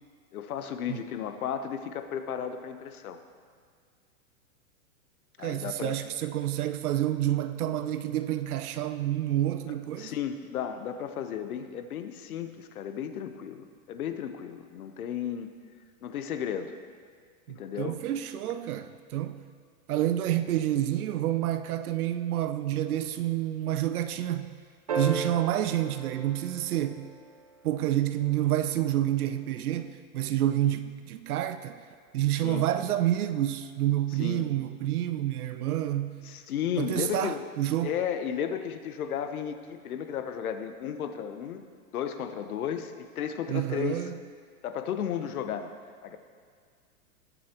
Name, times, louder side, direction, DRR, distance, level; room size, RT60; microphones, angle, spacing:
voice 1, 0.3-3.2 5.4-5.9 10.0-15.5 16.0-16.8 17.5-18.0 32.4-32.7 34.2-34.5 36.2-37.5 37.8-41.6 41.9-44.0 44.6-45.7 46.0-46.2, left 8 dB, 80° left, 1.1 m, -34 dB
voice 2, 5.4-10.1 17.5-19.4 19.9-24.5 24.9-27.1 27.6-31.8 32.1-36.2 36.8-37.9 43.5-44.1, right 12 dB, 85° right, 0.7 m, -28 dB
sound 1, 24.9-27.4 29.6-29.7, right 3 dB, 30° right, 0.3 m, -35 dB
18.5 x 8.0 x 3.0 m
supercardioid pair, 165°, 43 cm